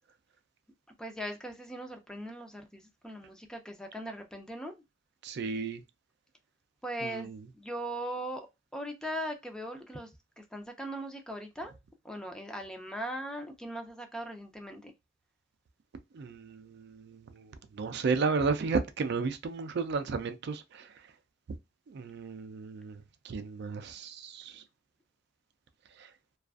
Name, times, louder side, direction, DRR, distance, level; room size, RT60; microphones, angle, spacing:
voice 1, 1.0-4.8 6.8-8.5 8.7-10.1 10.4-11.8 12.0-14.9, right 1 dB, 5° left, 0.4 m, -39 dB
voice 2, 5.2-5.8 7.0-7.3 16.1-17.2 17.8-20.9 21.9-23.0 23.2-24.6, right 4 dB, 60° right, 0.4 m, -33 dB
2.4 x 2.3 x 2.3 m
head